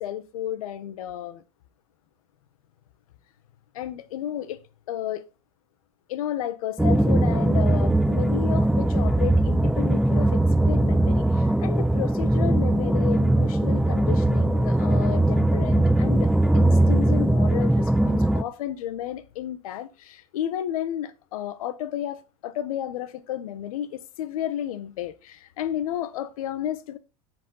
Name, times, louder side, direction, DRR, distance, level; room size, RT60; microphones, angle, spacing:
voice 1, 0.0-1.4 3.7-4.6 4.9-5.2 6.1-16.3 16.5-27.0, left 11 dB, 85° left, 1.3 m, -32 dB
sound 1, 6.8-18.4, right 1 dB, ahead, 0.4 m, -20 dB
7.9 x 7.4 x 4.0 m
supercardioid pair, 120°, 18 cm